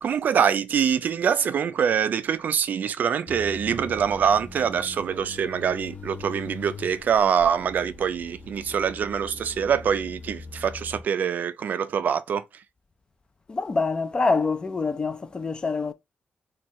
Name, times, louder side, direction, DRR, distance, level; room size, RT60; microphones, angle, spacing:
voice 1, 0.0-12.6, right 7 dB, 55° right, 0.3 m, -24 dB
sound 1, 3.3-11.0, left 3 dB, 45° left, 0.9 m, -42 dB
voice 2, 13.5-15.9, left 4 dB, 25° left, 0.4 m, -25 dB
4.4 x 2.3 x 3.0 m
wide cardioid pair, 170°, 4 cm